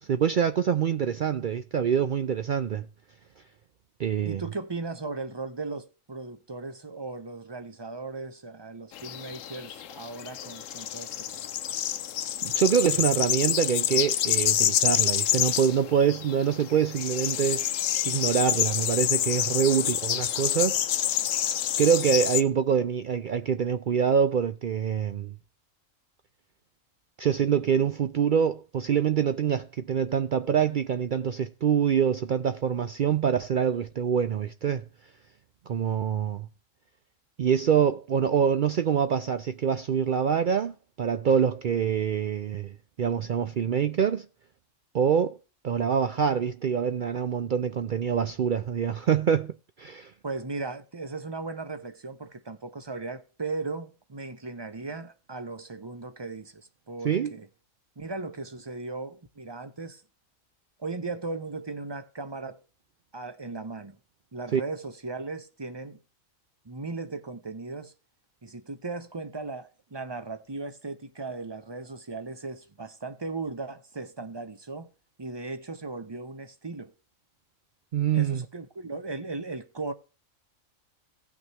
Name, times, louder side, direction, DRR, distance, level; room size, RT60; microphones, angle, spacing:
voice 1, 0.1-2.9 4.0-4.4 12.4-17.7 18.0-20.8 21.8-25.3 27.2-34.8 35.7-36.5 37.4-42.7 43.0-44.3 44.9-45.4 45.6-50.1 57.0-57.3 64.5-64.6 77.9-78.5, right 7 dB, 65° right, 0.5 m, -25 dB
voice 2, 4.2-11.4 19.5-19.6 50.2-57.5 58.0-60.0 60.8-62.6 63.1-64.0 64.3-66.0 66.6-67.9 68.4-74.9 75.2-76.9 78.1-79.9, right 3 dB, 25° right, 0.7 m, -37 dB
sound 1, 8.9-22.4, left 11 dB, 75° left, 1.0 m, -28 dB
17.5 x 6.0 x 3.0 m
omnidirectional pair, 1.4 m